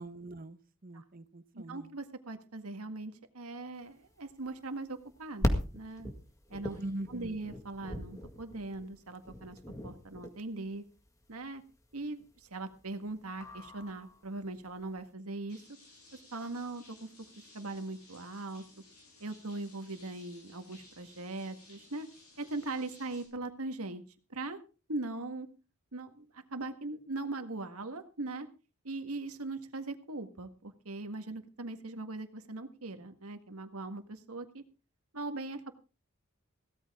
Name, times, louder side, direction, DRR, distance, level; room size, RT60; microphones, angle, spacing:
voice 1, 0.0-1.9 6.8-7.4, right 1 dB, 40° right, 12 dB, 1.0 m, -42 dB
voice 2, 1.5-6.1 6.5-10.8 11.3-11.6 11.9-15.6 16.3-17.1 17.5-18.6 19.2-22.1 22.4-24.0 24.3-24.6 24.9-25.5 25.9-28.5 28.8-34.6 35.1-35.7, right 2 dB, 90° right, 8 dB, 1.8 m, -40 dB
sound 1, 3.9-15.0, left 1 dB, 15° left, 1.8 m, -39 dB
sound 2, 15.5-23.3, left 2 dB, 85° left, 7.0 m, -58 dB
17.0 x 13.5 x 3.7 m, 0.34 s
head